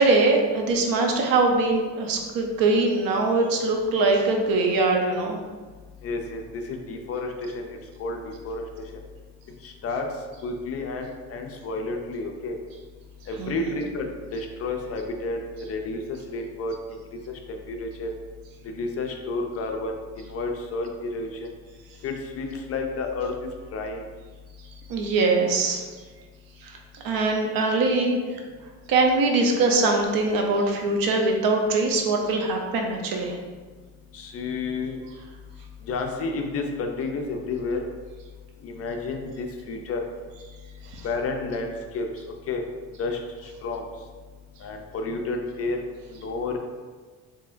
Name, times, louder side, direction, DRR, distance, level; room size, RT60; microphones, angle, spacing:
voice 1, 0.0-5.4 13.4-13.5 24.9-25.8 26.6-28.2 28.9-33.4 40.9-41.1, right 3 dB, 75° right, 2 dB, 0.7 m, -22 dB
voice 2, 6.0-7.7 8.0-8.2 8.4-8.6 9.6-10.1 10.4-12.5 13.3-14.1 14.3-15.4 15.7-16.7 17.5-18.1 18.7-19.9 20.3-21.5 22.0-23.3 23.7-24.0 34.1-35.0 35.9-37.8 38.6-40.0 41.0-42.1 42.5-42.6 43.0-43.2 43.6-43.8 44.6-45.8 46.2-46.6, left 3 dB, 45° left, 3 dB, 0.5 m, -30 dB
4.6 x 2.8 x 2.5 m, 1.4 s
cardioid pair, 130°, 35 cm